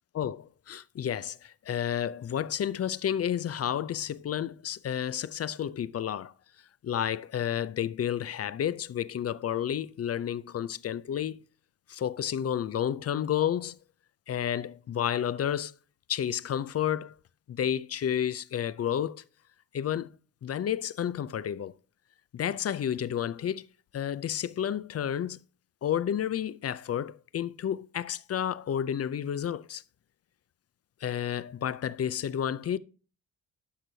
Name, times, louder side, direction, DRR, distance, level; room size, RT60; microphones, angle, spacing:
voice 1, 0.1-6.3 6.8-11.4 11.9-13.8 14.3-15.7 16.1-17.1 17.5-19.2 19.7-20.1 20.4-21.7 22.3-23.7 23.9-25.4 25.8-29.8 31.0-32.8, left 9 dB, 40° left, 0.5 m, -31 dB
12.0 x 6.0 x 2.7 m
supercardioid pair, 60°, 38 cm